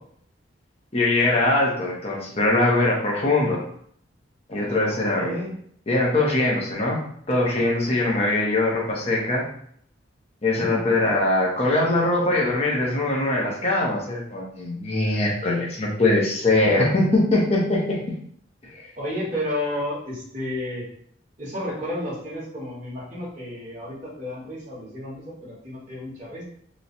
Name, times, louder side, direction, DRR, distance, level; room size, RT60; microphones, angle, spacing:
voice 1, 0.9-3.6 4.5-5.4 5.9-9.5 10.4-18.2 18.6-18.9, left 2 dB, 35° left, -2 dB, 0.9 m, -22 dB
voice 2, 4.9-5.5 8.0-8.3 10.6-10.8 18.9-20.9 21.4-26.4, left 1 dB, 40° right, -8 dB, 1.3 m, -32 dB
3.1 x 2.3 x 4.1 m, 0.65 s
head